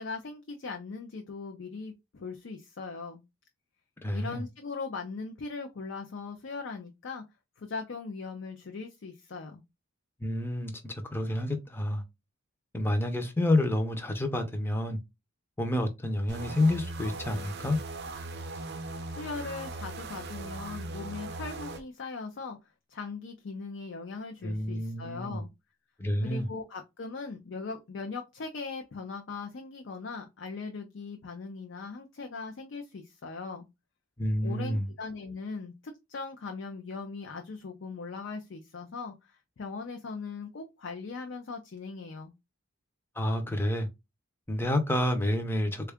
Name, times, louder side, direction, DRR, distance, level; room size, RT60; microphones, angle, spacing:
voice 1, 0.0-3.2 4.1-7.2 7.6-9.6 19.1-22.6 22.9-25.5 26.2-33.7 34.4-35.7 36.1-42.3, left 4 dB, 60° left, 0.5 m, -39 dB
voice 2, 4.0-4.4 10.2-12.0 12.7-15.0 15.6-17.8 24.4-25.4 26.0-26.5 34.2-34.9 43.2-43.9 44.5-45.9, left 1 dB, 10° left, 0.5 m, -29 dB
sound 1, 16.3-21.8, right 2 dB, 55° right, 0.6 m, -39 dB
3.6 x 2.3 x 3.4 m
head